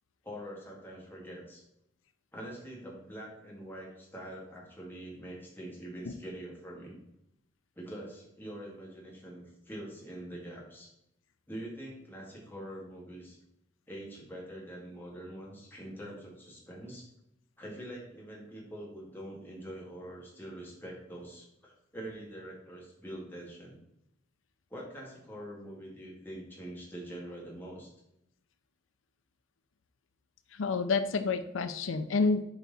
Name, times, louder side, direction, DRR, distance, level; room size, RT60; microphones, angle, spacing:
voice 1, 0.2-1.6 2.3-7.0 7.8-10.9 11.5-13.4 13.9-17.1 17.6-23.8 24.7-27.9, right 1 dB, 10° left, -4 dB, 2.2 m, -44 dB
voice 2, 30.6-32.4, left 4 dB, 85° left, 10 dB, 0.5 m, -29 dB
8.0 x 4.7 x 4.1 m, 0.81 s
head